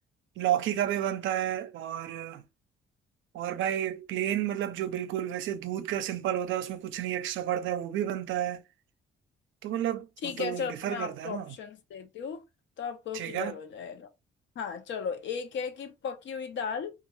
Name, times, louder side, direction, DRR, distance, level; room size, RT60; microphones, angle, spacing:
voice 1, 0.4-2.4 3.3-8.6 9.6-11.5 13.1-13.5, right 11 dB, 80° right, 0.5 m, -31 dB
voice 2, 10.2-12.4 12.8-14.1 14.6-16.9, left 6 dB, 70° left, 0.7 m, -36 dB
2.4 x 2.3 x 3.0 m
cardioid pair, 90°, 20 cm